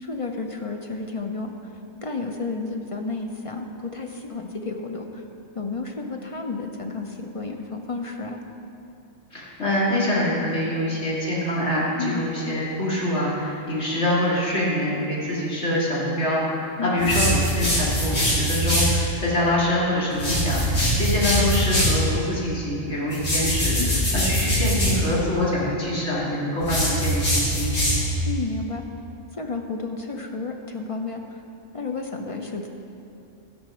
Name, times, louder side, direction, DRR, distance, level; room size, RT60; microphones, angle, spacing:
voice 1, 0.0-1.5 2.0-5.2 5.5-8.4 12.0-12.3 16.8-17.1 23.8-24.0 28.3-28.8 29.4-31.4 31.7-32.7, left 3 dB, 40° left, 3 dB, 0.5 m, -31 dB
voice 2, 9.3-27.7, left 1 dB, 65° left, -7 dB, 2.7 m, -25 dB
sound 1, 17.0-19.0 20.1-22.0 23.1-25.0 26.6-28.2, equal, 85° left, 2.9 m, -22 dB
13.0 x 5.4 x 6.1 m, 2.8 s
omnidirectional pair, 1.3 m